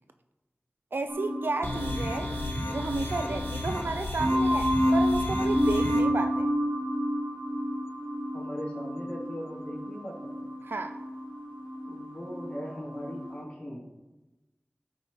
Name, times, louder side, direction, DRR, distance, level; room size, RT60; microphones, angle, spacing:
voice 1, 0.9-2.3 2.7-6.5 10.6-11.0, right 3 dB, 75° right, 8 dB, 0.4 m, -32 dB
sound 1, 1.1-13.3, equal, 20° right, 1.0 m, -30 dB
sound 2, 1.6-6.0, left 1 dB, 85° left, 1.5 m, -34 dB
voice 2, 8.3-10.3 11.8-13.9, equal, 35° left, -7 dB, 2.9 m, -39 dB
12.5 x 5.4 x 2.9 m, 1.0 s
wide cardioid pair, 50°, 4 cm